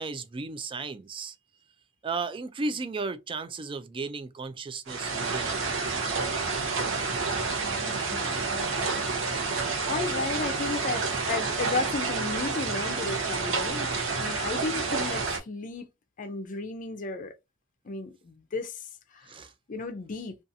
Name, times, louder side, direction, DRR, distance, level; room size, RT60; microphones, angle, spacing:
voice 1, 0.0-1.4 2.0-5.8 19.3-19.5, right 4 dB, 25° right, 0.3 m, -35 dB
sound 1, 4.9-15.4, right 4 dB, 80° right, 0.7 m, -29 dB
voice 2, 7.8-9.0 9.9-15.9 16.2-17.3 17.8-19.4 19.7-20.4, left 3 dB, 40° left, 0.5 m, -34 dB
2.5 x 2.4 x 2.6 m
head